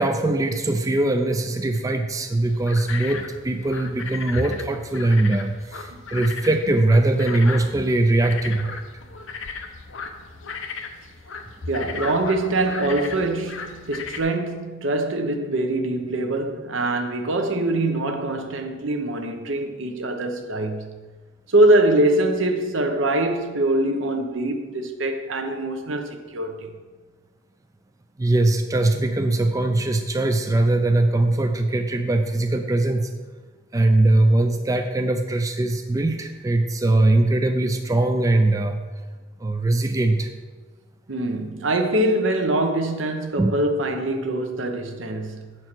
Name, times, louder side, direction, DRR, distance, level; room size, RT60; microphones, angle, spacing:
voice 1, 0.0-8.8 28.2-33.1 33.7-38.8 39.4-40.3 43.4-43.5, right 2 dB, 15° right, 0.4 m, -21 dB
sound 1, 2.4-14.2, left 4 dB, 75° left, 0.7 m, -36 dB
voice 2, 11.7-21.0 21.5-26.7 41.1-45.6, right 1 dB, 70° right, 0.9 m, -23 dB
7.9 x 4.5 x 6.0 m
head